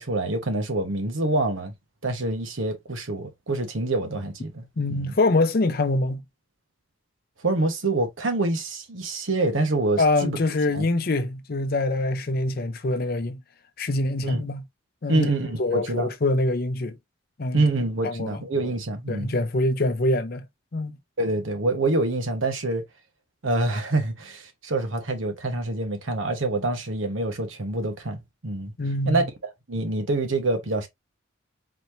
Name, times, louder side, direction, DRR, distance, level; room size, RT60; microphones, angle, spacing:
voice 1, 0.0-1.7 2.0-4.6 4.9-5.1 7.4-10.4 10.7-10.9 14.2-14.4 15.1-16.1 17.5-19.3 21.2-22.8 23.4-28.7 29.1-29.2 29.7-30.9, right 2 dB, 70° right, 1.2 m, -26 dB
voice 2, 4.8-6.2 10.0-13.4 13.8-14.6 15.0-15.3 15.6-17.0 17.4-17.6 18.0-18.4 19.1-20.5 20.7-20.9 28.8-29.3, left 2 dB, 45° left, 0.6 m, -24 dB
4.1 x 2.8 x 3.1 m
head